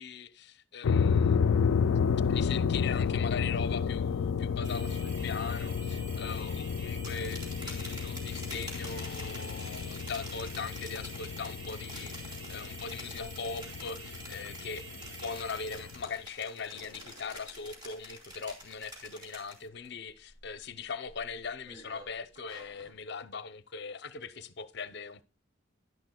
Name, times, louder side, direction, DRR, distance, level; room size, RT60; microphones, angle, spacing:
voice 1, 0.0-1.4 2.3-25.2, left 5 dB, 55° left, 0.7 m, -40 dB
sound 1, 0.8-16.1, left 6 dB, 80° left, 0.4 m, -31 dB
sound 2, 4.6-16.1, right 3 dB, 80° right, 5.5 m, -48 dB
sound 3, 6.9-19.9 20.2-20.6 21.1-22.9, equal, 20° right, 2.6 m, -48 dB
11.0 x 10.5 x 2.3 m
head